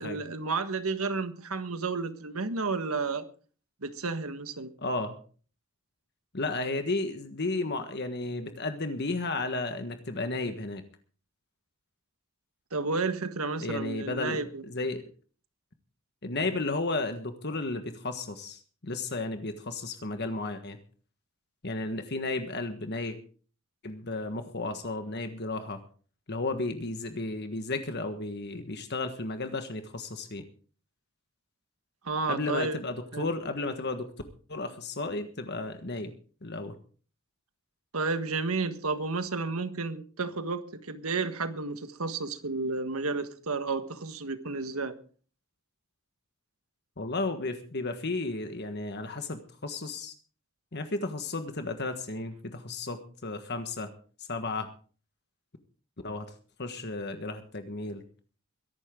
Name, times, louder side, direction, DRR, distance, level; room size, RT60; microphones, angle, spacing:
voice 1, 0.0-3.2 3.8-4.7 12.7-14.6 32.0-32.8 33.1-33.3 37.9-45.0, right 3 dB, 85° right, 10 dB, 1.6 m, -32 dB
voice 2, 4.8-5.2 6.3-10.8 13.6-15.0 16.2-20.8 21.6-23.2 23.8-25.8 26.3-30.4 32.3-34.1 34.5-36.1 36.4-36.7 47.0-50.1 50.7-53.9 54.2-54.7 56.0-56.3 56.6-58.0, left 2 dB, 50° left, 7 dB, 1.5 m, -33 dB
22.0 x 11.5 x 3.8 m, 0.40 s
head